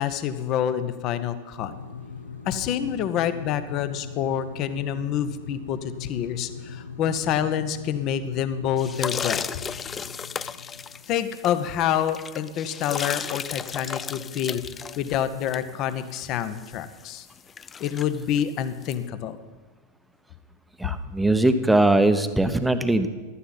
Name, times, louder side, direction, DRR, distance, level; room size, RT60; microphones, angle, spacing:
voice 1, 0.0-1.7 2.5-9.5 11.1-14.6 15.0-17.2 17.8-19.4, left 9 dB, 35° left, 12 dB, 0.9 m, -27 dB
sound 1, 1.6-11.4, left 6 dB, 80° left, 0.9 m, -40 dB
sound 2, 8.8-19.0, left 7 dB, 20° left, 0.3 m, -35 dB
voice 2, 20.8-23.1, right 2 dB, 5° right, 10 dB, 0.8 m, -20 dB
15.5 x 12.5 x 4.1 m, 1.3 s
figure-of-eight pair, 90°, 0 cm